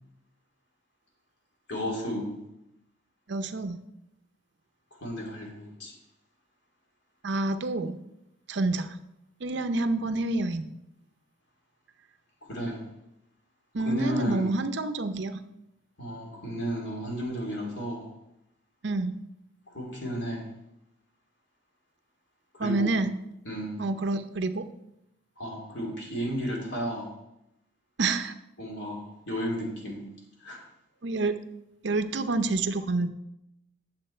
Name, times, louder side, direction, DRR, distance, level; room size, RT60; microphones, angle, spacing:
voice 1, 1.7-2.4 5.0-5.9 12.4-12.8 13.8-14.5 16.0-18.0 19.7-20.5 22.5-22.9 23.4-23.8 25.4-27.1 28.6-30.0 30.4-30.6, equal, 65° left, -1 dB, 2.8 m, -33 dB
voice 2, 3.3-3.8 7.2-8.0 8.5-8.9 9.4-10.6 13.7-15.4 18.8-19.2 22.6-23.1 23.8-24.7 28.0-28.3 31.0-31.4 31.8-33.1, right 2 dB, 60° right, 9 dB, 0.6 m, -28 dB
9.7 x 7.2 x 4.4 m, 0.84 s
head